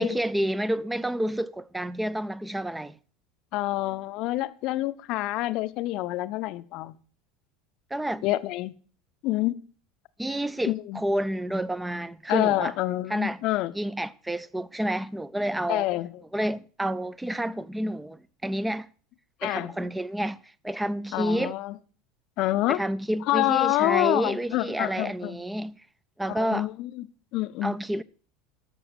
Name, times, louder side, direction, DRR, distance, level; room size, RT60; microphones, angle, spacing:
voice 1, 0.0-3.0 7.9-8.2 10.2-12.7 13.1-13.4 13.7-15.9 16.3-18.9 19.4-21.5 22.7-25.8 26.2-26.7 27.6-28.0, right 1 dB, 5° right, 0.5 m, -29 dB
voice 2, 3.5-7.0 8.2-8.7 9.2-9.6 10.7-11.0 12.3-13.7 15.7-16.2 19.4-19.7 21.1-21.7 22.4-22.8 23.3-25.4 26.3-27.1 27.3-27.8, left 17 dB, 50° left, 0.6 m, -27 dB
13.5 x 6.3 x 6.3 m
figure-of-eight pair, 70°, 0 cm